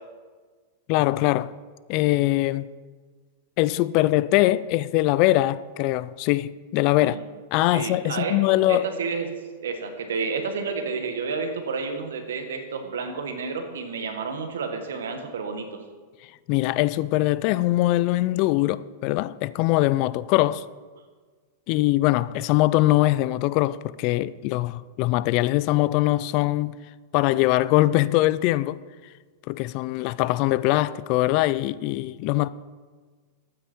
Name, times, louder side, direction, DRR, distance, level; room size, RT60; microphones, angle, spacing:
voice 1, 0.9-1.5 1.9-2.7 3.6-7.2 7.5-8.9 16.5-20.7 21.7-26.8 27.1-28.8 29.5-32.5, left 17 dB, 50° left, 0.4 m, -22 dB
voice 2, 7.7-8.4 8.7-9.3 9.6-15.8, right 5 dB, 90° right, 1.7 m, -30 dB
12.5 x 9.2 x 4.5 m
hypercardioid pair, 130°, 0 cm